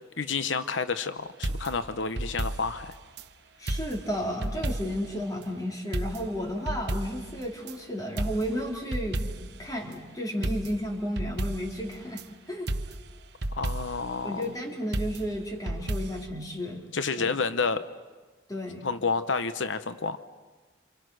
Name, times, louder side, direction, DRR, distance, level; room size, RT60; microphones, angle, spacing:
voice 1, 0.2-2.9 13.5-14.5 16.9-17.9 18.8-20.2, left 4 dB, 85° left, 11 dB, 0.9 m, -29 dB
sound 1, 1.4-3.3 3.7-5.1 5.4-5.5 5.9-7.8 8.2-9.6 9.9-10.0 10.4-12.3 12.7-14.1 14.9-16.3, right 1 dB, 60° right, 1.1 m, -33 dB
voice 2, 3.6-12.7 14.2-16.9 17.2-17.3 18.5-18.9, equal, 20° left, 1 dB, 3.8 m, -33 dB
28.5 x 27.5 x 6.4 m, 1.3 s
head